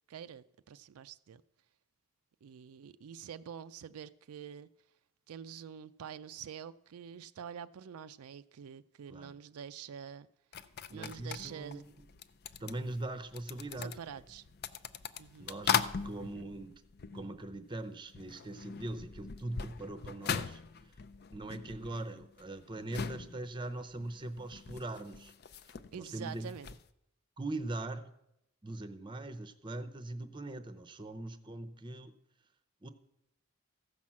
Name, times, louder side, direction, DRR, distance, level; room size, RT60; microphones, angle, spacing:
voice 1, 0.1-1.4 2.4-4.7 5.3-10.3 10.9-11.8 13.8-14.5 15.2-15.5 25.9-26.7, right 8 dB, 80° right, 0.4 m, -46 dB
sound 1, 10.5-17.8 18.1-26.9, left 7 dB, 45° left, 0.5 m, -40 dB
voice 2, 10.9-11.9 12.6-14.2 15.4-16.8 17.1-20.6 21.3-25.3 25.9-26.5 27.4-28.1 28.6-32.1 32.8-32.9, right 2 dB, 20° right, 0.7 m, -41 dB
15.0 x 5.8 x 7.3 m
head